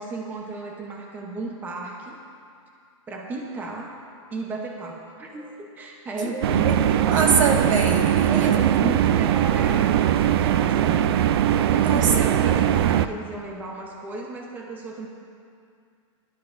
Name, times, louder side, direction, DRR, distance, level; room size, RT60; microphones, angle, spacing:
voice 1, 0.0-2.2 3.1-4.0 4.3-6.6 8.2-11.2 11.7-15.1, right 2 dB, 10° right, 0 dB, 0.9 m, -34 dB
voice 2, 6.2-8.8 11.6-12.1 12.4-12.9, right 4 dB, 75° right, 1 dB, 1.9 m, -25 dB
sound 1, 6.4-13.1, right 11 dB, 50° right, 0.4 m, -20 dB
22.0 x 12.5 x 2.6 m, 2.4 s
hypercardioid pair, 160°, 17 cm